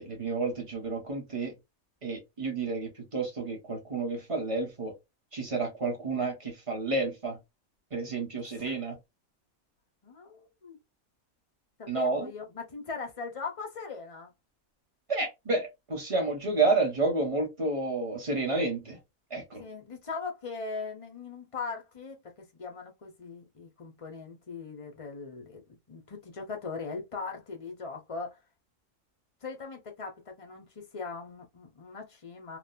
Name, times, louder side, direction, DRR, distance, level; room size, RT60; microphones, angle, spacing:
voice 1, 0.0-1.5 2.0-5.0 5.3-7.4 7.9-9.0 11.9-12.3 15.1-19.0 19.3-19.6, right 3 dB, 30° right, 0.8 m, -30 dB
voice 2, 10.0-10.8 11.8-14.3 19.6-28.4 29.4-32.6, left 4 dB, 50° left, 0.4 m, -40 dB
3.0 x 2.1 x 2.4 m
omnidirectional pair, 1.5 m